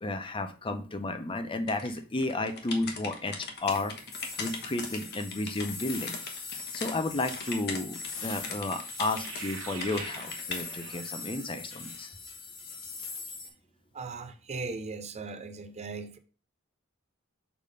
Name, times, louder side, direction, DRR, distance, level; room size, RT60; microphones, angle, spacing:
voice 1, 0.0-3.9 4.4-6.2 6.7-12.1, left 2 dB, 25° left, 0.7 m, -32 dB
sound 1, 1.7-6.9 7.3-9.4 9.8-10.6, left 4 dB, 55° left, 1.2 m, -40 dB
sound 2, 3.7-13.5, left 4 dB, 80° left, 1.6 m, -41 dB
sound 3, 5.9-6.6 8.7-11.6, right 6 dB, 90° right, 1.3 m, -46 dB
voice 2, 13.9-16.2, right 4 dB, 35° right, 0.6 m, -38 dB
6.7 x 3.6 x 5.2 m
head